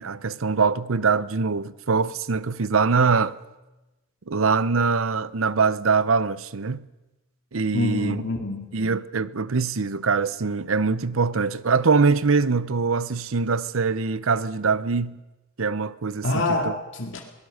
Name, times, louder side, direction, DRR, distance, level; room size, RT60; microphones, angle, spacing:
voice 1, 0.0-3.4 4.3-6.8 7.5-8.2 8.7-15.2 15.6-16.7, right 4 dB, 65° right, 0.7 m, -23 dB
voice 2, 7.7-8.7 16.2-17.2, left 2 dB, 60° left, 2.2 m, -26 dB
23.0 x 18.5 x 6.5 m
head